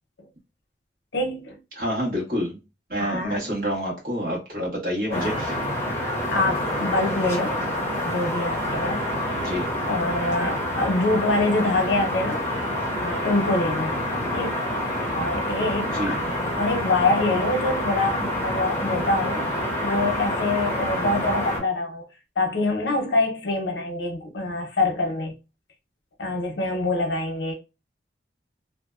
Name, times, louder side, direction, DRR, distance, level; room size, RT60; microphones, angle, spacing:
voice 1, 1.1-1.6 3.0-3.4 5.1-5.3 6.3-7.6 8.0-9.4 9.9-12.5 13.0-14.0 14.3-14.7 15.1-19.5 19.8-22.0 22.4-25.3 26.2-27.5, left 2 dB, 85° left, 0.7 m, -25 dB
voice 2, 1.8-2.6 2.9-5.6 9.4-9.6 15.8-16.1, equal, 55° right, 1.2 m, -28 dB
sound 1, 5.1-21.6, left 1 dB, 15° left, 0.7 m, -27 dB
2.6 x 2.2 x 2.3 m
head